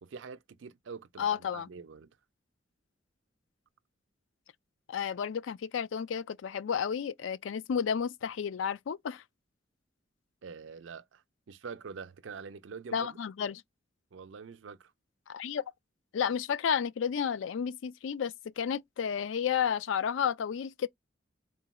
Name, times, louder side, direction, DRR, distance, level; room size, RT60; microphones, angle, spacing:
voice 1, 0.0-2.1 10.4-13.2 14.1-14.9, right 5 dB, 85° right, 0.5 m, -45 dB
voice 2, 1.2-1.7 4.9-9.2 12.9-13.6 15.3-15.6 16.1-20.9, left 7 dB, 90° left, 0.4 m, -32 dB
3.8 x 2.2 x 4.1 m
head